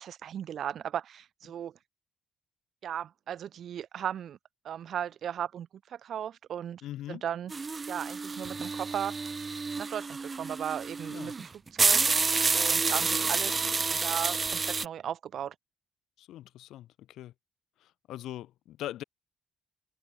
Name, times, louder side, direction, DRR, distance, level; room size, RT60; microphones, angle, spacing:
voice 1, 0.0-1.7 2.8-4.4 4.6-6.8 7.1-7.5 7.9-9.2 9.8-12.1 12.5-15.5, right 9 dB, 65° right, 1.0 m, -36 dB
voice 2, 6.8-7.2 11.1-11.3 16.2-17.3 18.1-19.0, left 13 dB, 85° left, 1.2 m, -41 dB
sound 1, 7.5-14.8, right 4 dB, 30° right, 0.9 m, -29 dB
cardioid pair, 90°, 0 cm